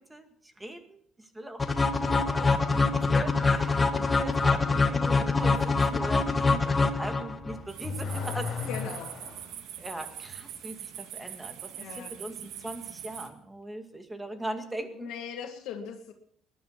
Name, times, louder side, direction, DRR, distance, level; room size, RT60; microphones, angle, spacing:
voice 1, 0.6-1.0 1.3-8.7 9.8-15.1, right 1 dB, 10° right, 6 dB, 2.1 m, -40 dB
sound 1, 1.6-7.6, left 3 dB, 20° left, 1.5 m, -24 dB
Car / Accelerating revving vroom, 7.3-9.5, left 5 dB, 50° left, 6.5 m, -35 dB
sound 2, 7.7-13.3, right 10 dB, 75° right, 1.7 m, -42 dB
voice 2, 8.7-9.1 11.8-12.1 14.3-14.4 14.8-16.1, left 7 dB, 85° left, 4 dB, 2.0 m, -39 dB
20.0 x 11.0 x 5.9 m, 0.67 s
cardioid pair, 120°, 0 cm